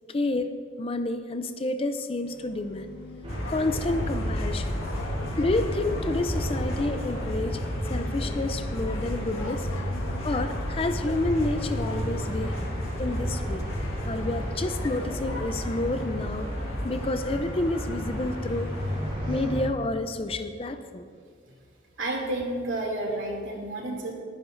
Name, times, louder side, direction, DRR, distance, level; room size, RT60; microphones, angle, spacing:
voice 1, 0.1-2.9 3.5-4.8 5.4-7.6 7.9-9.7 10.2-12.6 13.0-13.7 14.1-16.5 16.8-18.8 19.3-21.1, left 2 dB, 30° left, 9 dB, 0.4 m, -29 dB
sound 1, 2.1-11.2, left 3 dB, 50° left, 1.7 m, -49 dB
sound 2, 3.2-19.6, equal, 30° right, 3.5 m, -34 dB
sound 3, 3.3-19.1, left 1 dB, 80° left, 1.6 m, -34 dB
voice 2, 22.0-24.1, right 1 dB, 70° right, -1 dB, 2.6 m, -30 dB
21.0 x 10.5 x 2.6 m, 2.1 s
head